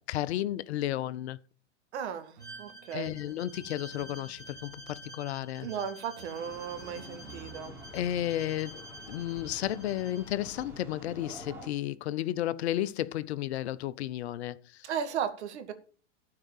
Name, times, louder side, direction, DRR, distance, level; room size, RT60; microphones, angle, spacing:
voice 1, 0.0-1.4 2.9-5.7 7.9-14.8, left 13 dB, 60° left, 0.7 m, -33 dB
voice 2, 1.9-3.2 5.6-7.7 14.8-15.7, right 8 dB, 65° right, 2.1 m, -36 dB
sound 1, 2.3-8.2, right 5 dB, 80° right, 2.4 m, -53 dB
Bowed string instrument, 2.4-10.3, equal, 10° left, 2.9 m, -49 dB
sound 2, 6.4-11.7, left 1 dB, 5° right, 3.8 m, -48 dB
13.0 x 4.8 x 7.1 m
hypercardioid pair, 110°, 37 cm